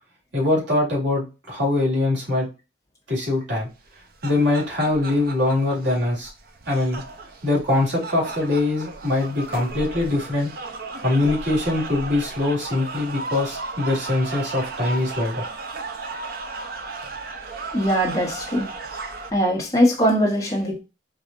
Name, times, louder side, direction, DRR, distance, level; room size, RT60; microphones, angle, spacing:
voice 1, 0.3-2.5 3.1-3.7 4.2-6.3 6.7-7.0 7.4-10.5 11.0-15.4, left 2 dB, 75° right, 2.3 m, -22 dB
sound 1, 3.8-19.3, right 3 dB, 50° right, 0.6 m, -35 dB
voice 2, 17.7-18.7 19.3-20.8, equal, 15° left, 1.3 m, -21 dB
4.9 x 2.6 x 2.5 m
head